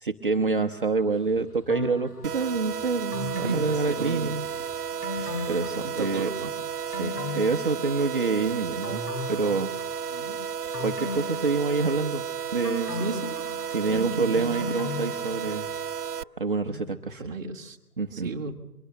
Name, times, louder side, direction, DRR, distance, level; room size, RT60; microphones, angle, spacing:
voice 1, 0.0-4.5 5.5-6.3 7.0-9.0 9.3-9.7 10.8-12.2 12.5-12.9 13.7-15.7 16.4-17.2 18.0-18.3, right 4 dB, 35° right, 4 dB, 0.9 m, -27 dB
sound 1, 0.9-9.0, right 1 dB, 10° left, 5.9 m, -57 dB
sound 2, 1.7-2.5 3.1-4.6 5.0-6.4 6.7-8.4 8.8-10.2 10.7-12.2 12.6-15.9 16.2-16.3, left 2 dB, 90° left, 5.1 m, -37 dB
sound 3, 2.2-16.2, right 7 dB, 85° right, 0.6 m, -33 dB
voice 2, 3.4-4.7 5.1-5.4 5.8-6.5 10.1-10.4 13.0-13.5 13.9-14.7 16.7-17.8 18.1-18.5, right 4 dB, 10° right, -3 dB, 1.2 m, -36 dB
23.5 x 18.0 x 6.7 m, 0.89 s
figure-of-eight pair, 160°, 45 cm